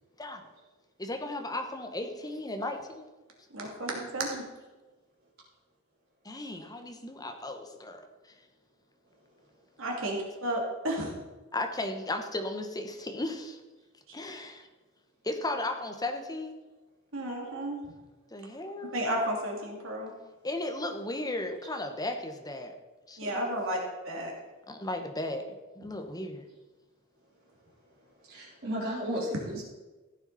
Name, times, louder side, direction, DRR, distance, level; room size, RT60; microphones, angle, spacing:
voice 1, 1.0-3.1 6.2-8.3 11.5-13.6 14.1-14.7 15.2-16.6 18.3-19.0 20.4-22.7 23.1-23.6 24.7-25.4 25.7-26.4, left 2 dB, 20° left, 5 dB, 1.2 m, -35 dB
voice 2, 3.5-4.4 9.8-11.1 17.1-17.8 18.9-20.1 23.2-23.8 24.0-24.3, right 1 dB, 70° right, 0 dB, 2.8 m, -32 dB
voice 3, 28.3-29.6, equal, 50° right, -7 dB, 4.1 m, -33 dB
15.0 x 9.0 x 4.2 m, 1.2 s
head